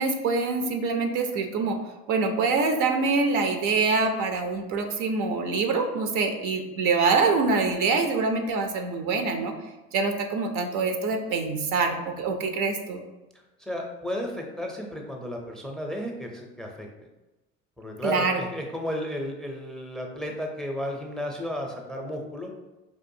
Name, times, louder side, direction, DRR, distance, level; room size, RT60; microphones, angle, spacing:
voice 1, 0.0-1.8 2.1-9.5 9.9-13.0 18.0-18.4, right 4 dB, 65° right, 5 dB, 0.6 m, -25 dB
voice 2, 13.6-16.9 17.8-22.5, equal, ahead, 2 dB, 0.5 m, -33 dB
4.6 x 2.5 x 2.6 m, 1.1 s
supercardioid pair, 85°, 34 cm